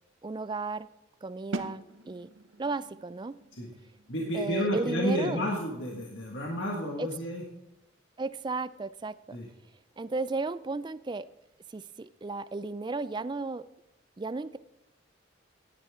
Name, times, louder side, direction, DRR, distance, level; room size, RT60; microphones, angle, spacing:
voice 1, 0.2-0.9 1.2-2.3 2.6-3.4 4.3-5.5 7.0-7.1 8.2-9.4 10.0-11.3 11.7-13.6 14.2-14.6, right 3 dB, 20° right, 16 dB, 0.3 m, -34 dB
sound 1, 1.5-7.2, right 2 dB, 75° right, 0.9 m, -44 dB
voice 2, 4.1-7.4 9.3-9.5, equal, 60° left, -2 dB, 1.8 m, -31 dB
15.5 x 10.5 x 3.6 m, 0.89 s
head